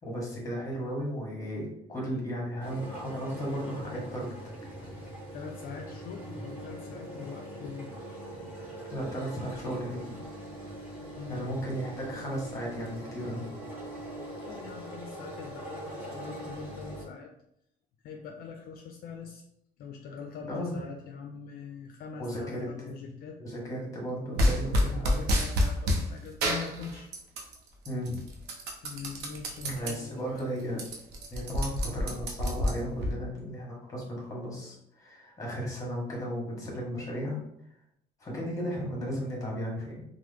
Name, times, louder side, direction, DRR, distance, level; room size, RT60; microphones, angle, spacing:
voice 1, 0.0-4.3 8.9-10.1 11.3-13.5 20.5-20.7 22.2-23.1 23.4-25.2 27.8-28.2 29.6-30.8 31.3-37.4 38.2-40.0, equal, 20° left, -3 dB, 1.3 m, -35 dB
sound 1, 2.6-17.1, right 1 dB, 10° right, 1.3 m, -42 dB
voice 2, 5.3-7.9 11.2-11.4 14.5-17.3 18.0-19.4 19.8-23.4 24.7-27.1 28.8-30.5, left 6 dB, 60° left, 3 dB, 0.4 m, -43 dB
sound 2, 24.4-26.0 26.4-27.5 27.9-29.9 30.4-30.5 30.7-33.1, equal, 75° right, 0.7 m, -28 dB
2.9 x 2.1 x 3.3 m, 0.76 s
cardioid pair, 110°, 17 cm